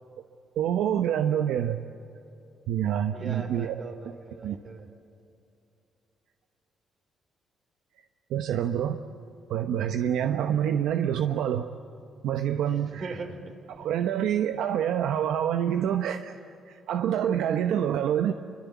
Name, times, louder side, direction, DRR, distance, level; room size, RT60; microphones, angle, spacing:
voice 1, 0.5-1.8 2.7-3.8 4.4-4.6 8.3-9.0 9.5-11.7 12.2-13.2 13.7-16.4 16.7-18.3, right 9 dB, 85° right, 7 dB, 0.9 m, -26 dB
voice 2, 3.1-4.9 12.7-13.5, right 4 dB, 50° right, 6 dB, 4.1 m, -40 dB
27.5 x 24.5 x 8.4 m, 2.7 s
cardioid pair, 90°, 0 cm